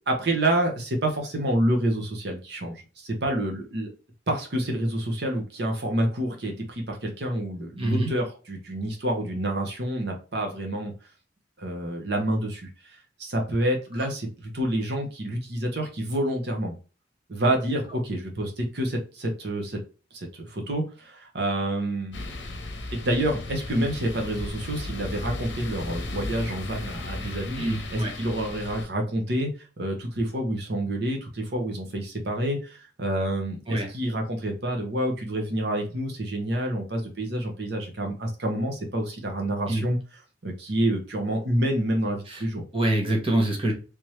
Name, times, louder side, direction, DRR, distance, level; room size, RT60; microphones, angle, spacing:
voice 1, 0.1-3.9 4.3-10.9 11.6-16.7 17.3-19.8 20.1-22.3 22.9-27.6 27.9-29.5 29.8-40.0 40.4-42.6, right 1 dB, 60° right, 2 dB, 0.9 m, -28 dB
voice 2, 7.8-8.1 27.6-28.1 33.7-33.9 39.7-39.9 42.3-42.5 42.7-43.7, right 1 dB, 30° right, 1 dB, 0.9 m, -25 dB
sound 1, 22.1-28.9, left 2 dB, 75° left, 0.7 m, -35 dB
3.4 x 3.0 x 3.1 m, 0.34 s
head